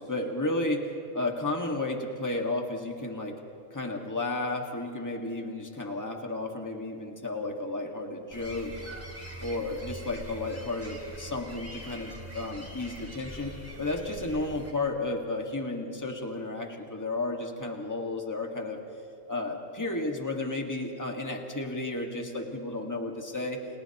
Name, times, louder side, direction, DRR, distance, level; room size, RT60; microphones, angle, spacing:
voice 1, 0.0-3.4 3.7-8.7 9.4-18.8 19.3-23.6, left 2 dB, 15° left, 2 dB, 1.8 m, -33 dB
sound 1, 8.3-14.7, right 1 dB, 10° right, 2.8 m, -43 dB
29.5 x 29.0 x 3.0 m, 2.7 s
omnidirectional pair, 1.2 m